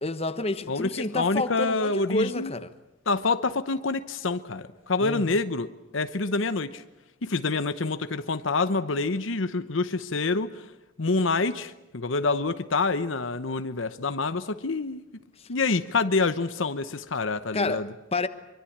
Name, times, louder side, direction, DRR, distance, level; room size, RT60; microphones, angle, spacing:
voice 1, 0.0-2.7 5.0-5.4 17.5-18.3, left 2 dB, 30° left, 1.1 m, -29 dB
voice 2, 0.7-2.5 3.1-6.8 7.2-10.5 11.0-15.1 15.5-17.9, left 3 dB, 75° left, 0.9 m, -27 dB
24.0 x 24.0 x 8.7 m
head